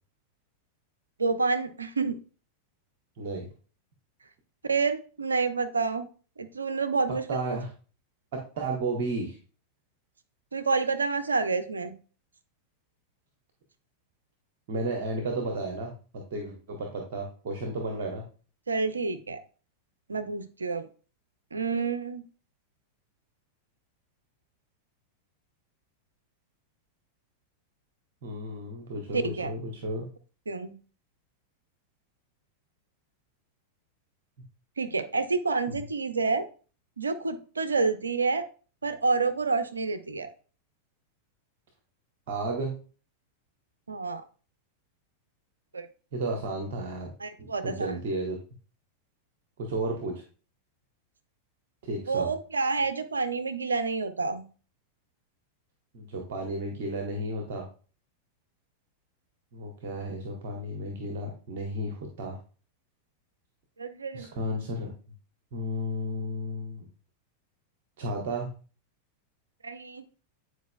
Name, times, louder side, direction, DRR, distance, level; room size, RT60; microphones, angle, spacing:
voice 1, 1.2-2.2 4.6-6.1 6.4-7.4 10.5-11.9 18.7-19.4 20.1-20.9 21.5-22.2 29.1-29.5 30.5-30.8 34.8-36.5 37.0-38.4 38.8-40.3 43.9-44.2 45.7-45.9 47.2-47.9 52.1-54.4 63.8-64.3 69.6-70.0, right 4 dB, 75° right, 10 dB, 0.6 m, -28 dB
voice 2, 3.2-3.5 7.3-7.7 8.3-9.4 14.7-15.9 16.3-18.2 28.2-30.1 35.7-35.8 42.3-42.8 46.1-47.1 47.4-48.4 49.6-50.2 51.8-52.3 55.9-57.7 59.5-62.4 64.1-64.9 65.5-66.8 68.0-68.5, right 1 dB, 55° right, 2 dB, 1.1 m, -33 dB
9.2 x 4.7 x 2.2 m, 0.38 s
figure-of-eight pair, 90°, 0 cm